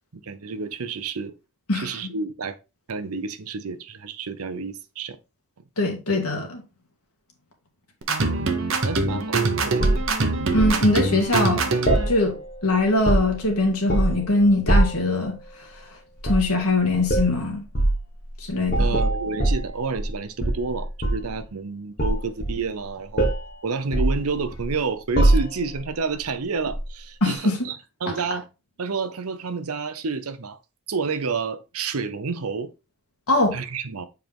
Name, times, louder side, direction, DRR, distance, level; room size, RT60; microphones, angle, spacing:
voice 1, 0.1-1.3 1.7-2.6 2.9-5.2 8.2-10.2 18.8-23.3 23.6-28.5 28.8-30.6 30.9-32.7 33.5-34.1, right 4 dB, 85° right, 0.7 m, -30 dB
voice 2, 5.8-6.6 10.5-11.7 12.1-15.4 16.2-17.6 18.4-19.0 27.2-27.6 33.3-33.6, left 2 dB, 90° left, 2.0 m, -22 dB
sound 1, 8.0-12.1, right 3 dB, 65° right, 1.1 m, -24 dB
sound 2, 9.8-10.8 11.9-12.6 12.9-13.5 13.9-14.3 14.7-15.1 16.2-16.5 17.1-17.3 17.7-18.0 18.7-20.1 20.4-21.3 22.0-22.8 23.2-23.5 23.9-24.7 25.2-25.8 26.7-26.9, right 1 dB, 40° left, 1.6 m, -22 dB
7.3 x 4.6 x 3.5 m
head